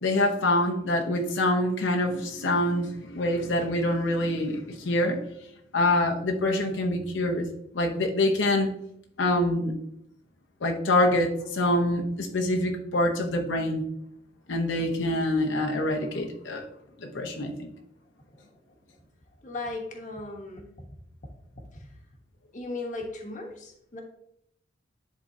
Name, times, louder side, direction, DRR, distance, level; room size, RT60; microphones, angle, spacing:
voice 1, 0.0-5.2 5.7-7.5 7.7-8.7 9.2-9.7 10.6-13.8 14.5-16.6 17.0-17.7, left 1 dB, 85° left, 1 dB, 0.9 m, -25 dB
voice 2, 19.4-20.7 22.5-24.0, left 2 dB, 40° left, 1 dB, 1.1 m, -36 dB
10.5 x 3.8 x 2.7 m, 0.75 s
head